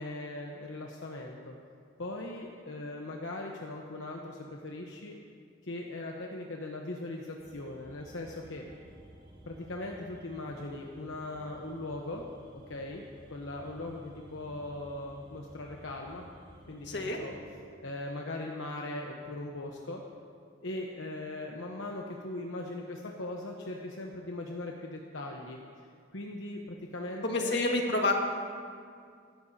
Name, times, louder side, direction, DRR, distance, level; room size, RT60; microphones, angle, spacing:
voice 1, 0.0-1.5 2.0-5.1 5.6-8.6 9.4-12.2 12.7-13.0 13.3-16.3 16.7-17.3 17.8-20.0 20.6-25.6 26.1-27.6, left 2 dB, 80° left, 0 dB, 1.0 m, -39 dB
sound 1, 7.4-17.3, equal, 25° right, 3.7 m, -54 dB
voice 2, 16.8-17.2 27.2-28.1, left 2 dB, 60° left, 1 dB, 1.7 m, -28 dB
24.5 x 12.0 x 2.8 m, 2.2 s
head